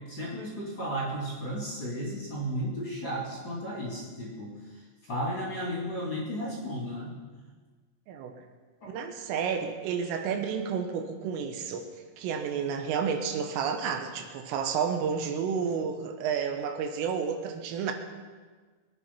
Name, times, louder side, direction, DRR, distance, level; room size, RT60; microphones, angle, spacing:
voice 1, 0.0-4.5 5.0-7.2 8.8-8.9, equal, 25° left, -5 dB, 3.1 m, -34 dB
voice 2, 8.9-11.9 12.2-17.9, right 6 dB, 80° right, 5 dB, 3.8 m, -31 dB
24.0 x 9.6 x 5.6 m, 1.4 s
omnidirectional pair, 5.9 m